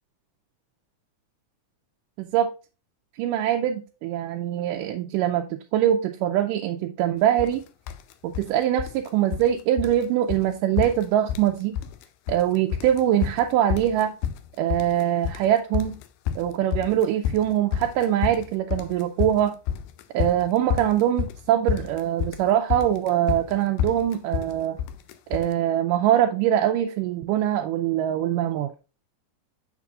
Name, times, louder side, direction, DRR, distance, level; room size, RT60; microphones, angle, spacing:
voice 1, 2.2-2.5 3.2-7.6 8.2-11.7 12.3-14.1 14.6-16.0 16.4-19.6 20.1-24.8 25.3-28.7, right 11 dB, 80° right, 2.1 m, -23 dB
sound 1, 7.4-7.6 7.9-8.5 8.8-9.5 9.8-10.0 10.3-10.5 10.8-11.5 11.8-12.4 12.7-25.5, left 9 dB, 80° left, 2.2 m, -29 dB
7.1 x 6.7 x 2.4 m
omnidirectional pair, 3.9 m